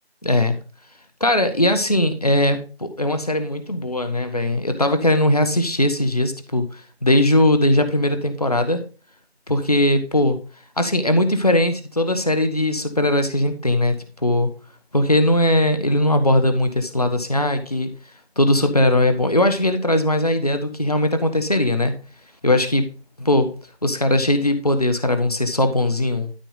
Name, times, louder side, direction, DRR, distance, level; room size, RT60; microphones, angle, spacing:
voice 1, 0.2-0.6 1.2-8.8 9.5-10.4 10.8-14.5 14.9-17.9 18.4-21.9 22.4-22.8 23.2-23.5 23.8-26.3, left 1 dB, 35° left, 8 dB, 1.3 m, -19 dB
13.0 x 5.8 x 3.9 m, 0.36 s
figure-of-eight pair, 175°, 32 cm